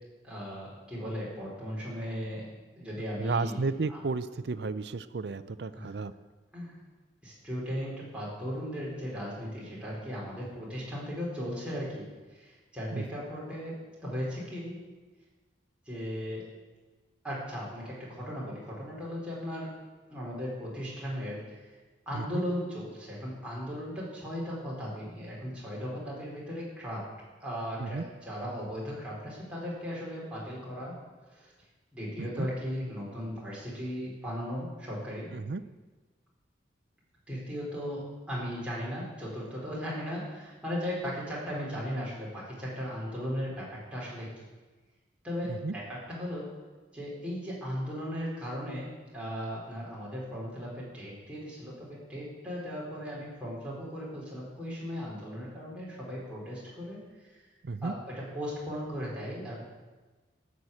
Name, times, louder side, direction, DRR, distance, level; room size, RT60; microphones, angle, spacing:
voice 1, 0.2-2.5 2.8-3.6 3.9-4.0 5.7-5.9 6.5-6.8 7.2-12.0 12.3-13.7 14.0-14.8 15.9-16.4 17.2-19.7 20.1-21.7 22.1-27.0 27.4-30.9 31.3-31.5 31.9-35.3 37.3-38.0 38.3-44.3 45.2-46.5 46.9-48.9 49.1-57.4 57.8-59.6, equal, 5° right, -6 dB, 4.2 m, -37 dB
voice 2, 3.2-6.1 12.9-13.0 22.1-22.4 27.8-28.0 32.2-32.5 35.3-35.6 45.5-45.7 57.6-57.9, right 4 dB, 60° right, 13 dB, 0.5 m, -33 dB
13.0 x 6.5 x 8.4 m, 1.3 s
head